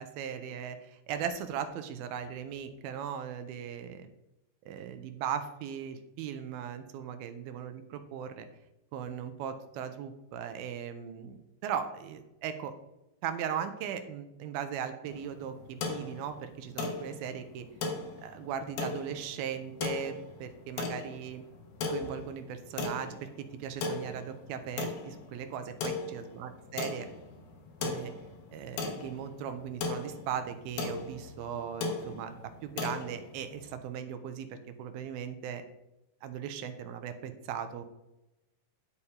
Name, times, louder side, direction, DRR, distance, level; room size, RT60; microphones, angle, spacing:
voice 1, 0.0-4.1 4.7-8.5 8.9-11.4 11.6-12.7 13.2-17.7 18.2-21.4 21.9-27.1 27.8-28.1 28.5-35.6 36.2-37.8, right 8 dB, 85° right, 8 dB, 2.7 m, -38 dB
sound 1, 15.1-33.8, left 3 dB, 90° left, 3.2 m, -38 dB
11.0 x 7.2 x 3.4 m, 0.93 s
omnidirectional pair, 4.3 m